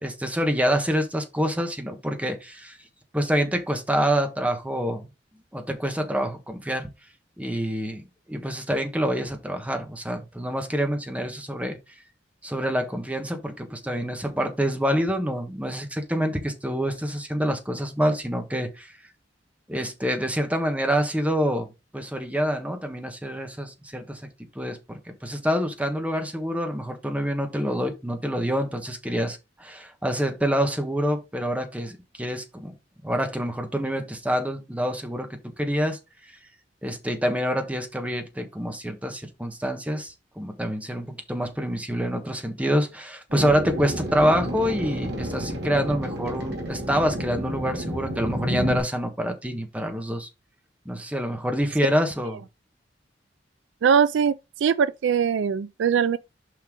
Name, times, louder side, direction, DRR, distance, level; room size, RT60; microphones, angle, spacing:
voice 1, 0.0-2.8 3.1-5.1 5.5-6.9 7.4-11.8 12.4-18.9 19.7-21.7 21.9-24.2 24.5-24.8 25.1-32.7 33.0-36.4 36.8-50.3 50.8-52.4, equal, 10° right, 1.3 m, -27 dB
sound 1, 43.3-48.8, equal, 65° right, 2.4 m, -30 dB
voice 2, 53.8-54.3 54.6-56.2, right 7 dB, 90° right, 0.4 m, -21 dB
6.2 x 5.5 x 3.7 m
head